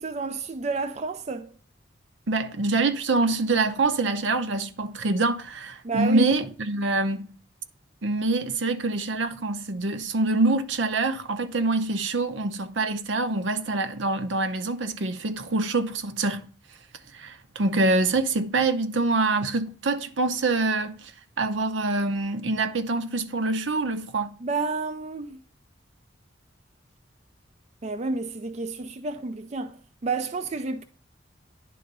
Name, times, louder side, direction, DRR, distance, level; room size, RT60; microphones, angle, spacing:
voice 1, 0.0-1.5 5.8-6.3 24.4-25.4 27.8-30.8, right 3 dB, 35° right, 0.4 m, -30 dB
voice 2, 2.3-7.3 8.0-16.4 17.1-21.1 21.4-24.4, right 3 dB, 75° right, 0.8 m, -25 dB
10.0 x 3.9 x 5.3 m
head